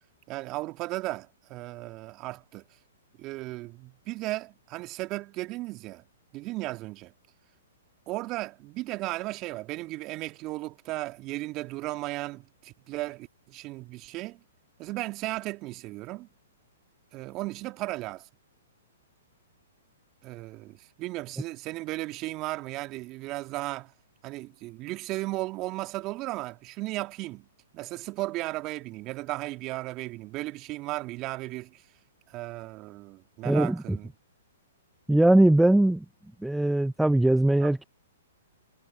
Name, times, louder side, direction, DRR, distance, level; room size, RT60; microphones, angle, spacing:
voice 1, 0.3-2.7 3.2-6.0 6.3-7.1 8.1-14.4 14.8-16.3 17.1-18.3 20.2-23.9 24.2-27.5 27.7-31.9 32.3-34.1 37.6-37.9, right 19 dB, 35° right, 2.1 m, -35 dB
voice 2, 33.4-34.0 35.1-36.0 36.4-37.8, right 1 dB, 5° right, 0.6 m, -21 dB
hypercardioid pair, 120°, 0 cm